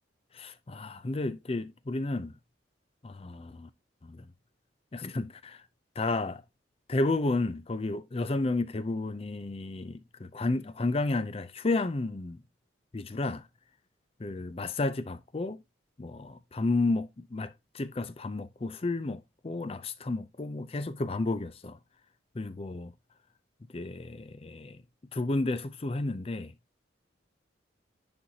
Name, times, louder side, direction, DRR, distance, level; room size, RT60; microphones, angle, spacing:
voice 1, 0.3-2.3 3.0-3.7 4.0-4.3 4.9-5.6 6.0-6.4 6.9-12.4 12.9-13.4 14.2-15.6 16.0-21.8 22.4-22.9 23.7-24.8 25.1-26.5, left 2 dB, 30° left, 0.5 m, -32 dB
10.0 x 4.4 x 2.8 m
head